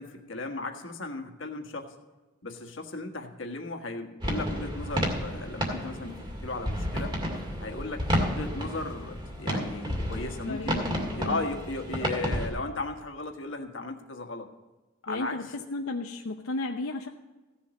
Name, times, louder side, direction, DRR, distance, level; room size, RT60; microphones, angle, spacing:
voice 1, 0.0-1.9 2.4-7.2 7.6-14.5 15.0-15.4, left 2 dB, 60° left, 4 dB, 1.5 m, -36 dB
sound 1, 4.2-12.5, equal, 20° right, 2.2 m, -31 dB
voice 2, 10.5-11.4 15.1-15.4 15.7-17.1, left 2 dB, 85° left, 2 dB, 0.8 m, -34 dB
15.5 x 7.3 x 5.1 m, 1.2 s
head